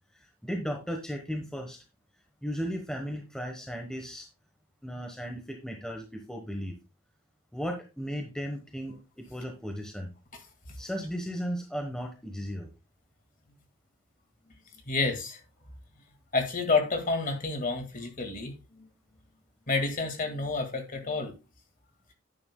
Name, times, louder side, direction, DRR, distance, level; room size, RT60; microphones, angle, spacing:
voice 1, 0.1-1.8 2.4-4.3 4.8-6.7 7.5-10.1 10.8-12.7, equal, 5° left, 2 dB, 1.0 m, -36 dB
voice 2, 14.9-15.4 16.3-18.9 19.7-21.3, left 3 dB, 35° left, 5 dB, 1.8 m, -29 dB
10.5 x 9.3 x 2.2 m, 0.28 s
head